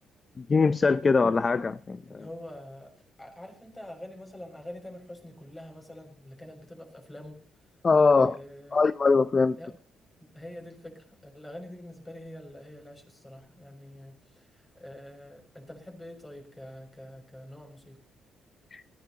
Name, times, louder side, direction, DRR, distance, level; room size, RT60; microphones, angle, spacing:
voice 1, 0.4-2.2 7.8-8.4 8.7-9.6 18.7-18.8, left 4 dB, 35° left, 0.6 m, -22 dB
voice 2, 2.1-2.9 3.2-7.4 8.1-8.8 9.6-9.7 10.2-18.0, left 1 dB, 15° left, 6.5 m, -45 dB
19.0 x 16.5 x 2.9 m
cardioid pair, 90°, 0 cm